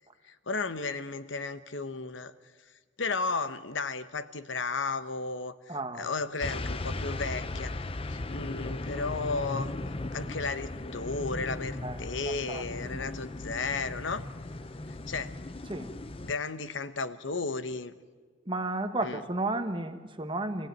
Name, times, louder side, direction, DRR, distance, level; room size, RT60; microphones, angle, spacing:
voice 1, 0.2-2.3 3.0-9.7 10.1-14.2 14.9-15.3 16.2-17.9 19.0-19.2, left 4 dB, 70° left, 12 dB, 1.0 m, -34 dB
voice 2, 5.7-6.1 11.8-12.0 12.5-13.0 15.7-15.9 18.4-20.7, right 2 dB, 25° right, 8 dB, 1.4 m, -33 dB
sound 1, 6.4-16.3, left 2 dB, 30° left, 0.6 m, -37 dB
26.0 x 16.0 x 9.3 m, 1.5 s
head